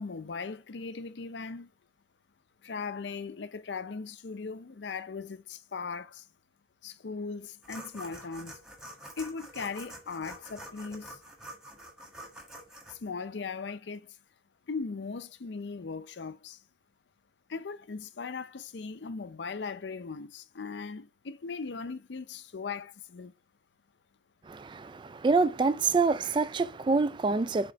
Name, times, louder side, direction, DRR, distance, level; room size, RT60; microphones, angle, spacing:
voice 1, 0.0-1.7 2.6-6.3 6.8-8.6 9.2-11.2 12.9-14.2 14.7-16.6 17.5-23.3, left 4 dB, 85° left, 0.6 m, -38 dB
sound 1, 7.6-12.9, right 1 dB, 5° right, 1.6 m, -46 dB
voice 2, 24.5-27.7, right 4 dB, 25° right, 0.3 m, -26 dB
5.1 x 4.3 x 5.7 m
head